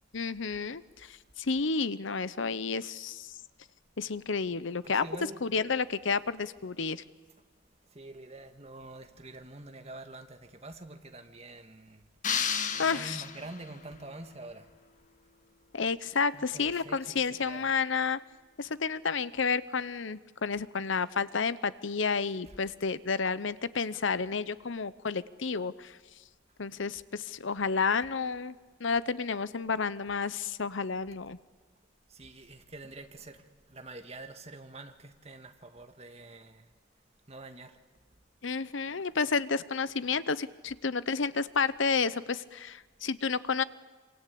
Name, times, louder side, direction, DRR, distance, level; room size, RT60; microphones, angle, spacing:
voice 1, 0.1-3.4 4.0-5.1 5.4-7.0 12.8-13.2 15.7-18.2 18.6-26.0 26.6-31.4 38.4-43.6, left 5 dB, 70° left, 0.8 m, -31 dB
voice 2, 4.8-5.4 7.9-12.0 12.7-14.7 16.3-17.7 32.1-33.4 33.7-36.7 37.3-37.8, right 2 dB, 30° right, 1.9 m, -46 dB
sound 1, 12.2-13.8, left 7 dB, 40° left, 1.4 m, -32 dB
26.5 x 26.0 x 8.6 m
head